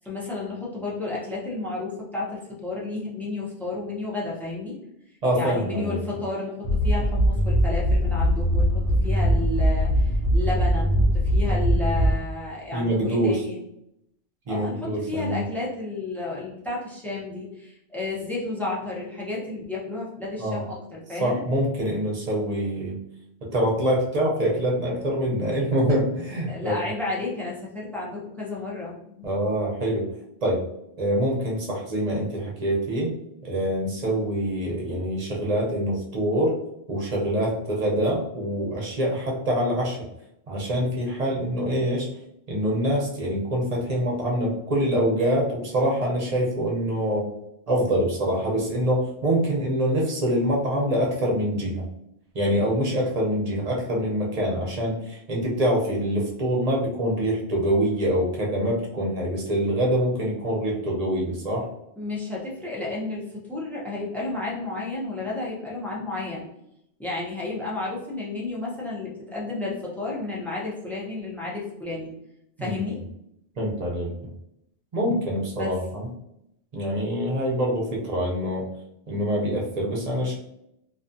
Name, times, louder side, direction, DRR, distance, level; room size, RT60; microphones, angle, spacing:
voice 1, 0.0-4.8 5.3-13.6 14.5-21.4 26.5-29.3 62.0-66.4 67.0-72.1 72.6-73.0 75.5-75.7, left 2 dB, ahead, -5 dB, 0.4 m, -32 dB
voice 2, 5.2-6.0 11.4-11.6 12.7-13.4 14.5-15.5 20.4-20.7 21.2-23.0 23.4-26.8 29.2-30.1 30.4-30.6 31.0-33.1 33.4-36.5 36.9-40.0 40.5-42.1 42.5-47.3 47.7-51.9 52.3-61.7 72.6-72.8 73.6-74.3 74.9-76.1 76.7-78.7 79.1-80.4, equal, 40° right, -3 dB, 0.7 m, -25 dB
sound 1, 6.6-12.5, equal, 75° left, 0.9 m, -21 dB
2.4 x 2.3 x 2.6 m, 0.79 s
omnidirectional pair, 1.1 m